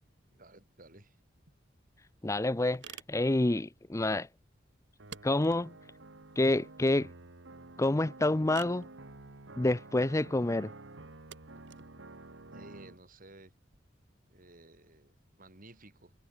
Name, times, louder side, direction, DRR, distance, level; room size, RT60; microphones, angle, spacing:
voice 1, 0.3-1.2 12.5-13.5 14.3-16.1, right 2 dB, 50° right, 6.7 m, -55 dB
sound 1, 1.4-13.8, right 7 dB, 70° right, 6.6 m, -55 dB
voice 2, 2.2-4.3 5.2-5.7 6.4-7.1 7.8-8.9 9.6-10.7, left 2 dB, 15° left, 0.6 m, -28 dB
sound 2, 5.0-13.0, right 2 dB, 85° right, 1.8 m, -50 dB
head